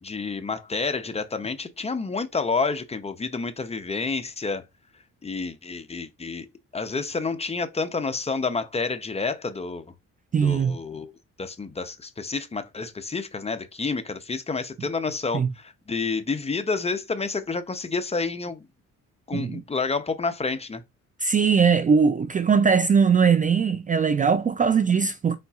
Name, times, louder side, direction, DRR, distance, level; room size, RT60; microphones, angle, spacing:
voice 1, 0.0-4.6 5.2-6.5 6.7-9.9 10.4-11.1 11.4-18.7 19.3-20.8, left 4 dB, 20° left, 0.6 m, -29 dB
voice 2, 10.3-10.8 15.3-15.5 19.3-19.6 21.2-25.4, right 6 dB, 25° right, 0.4 m, -20 dB
4.2 x 4.0 x 2.4 m
cardioid pair, 90°, 30 cm